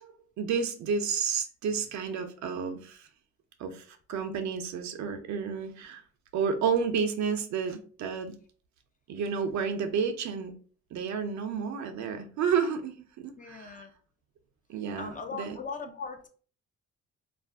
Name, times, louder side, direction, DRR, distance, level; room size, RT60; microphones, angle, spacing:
voice 1, 0.0-3.1 3.6-6.0 6.3-8.3 9.1-10.5 10.9-13.8 14.7-15.6, right 6 dB, 70° right, 7 dB, 0.6 m, -31 dB
voice 2, 13.4-13.9 15.0-16.3, left 4 dB, 25° left, 6 dB, 0.4 m, -39 dB
2.4 x 2.0 x 3.4 m, 0.43 s
cardioid pair, 90°, 30 cm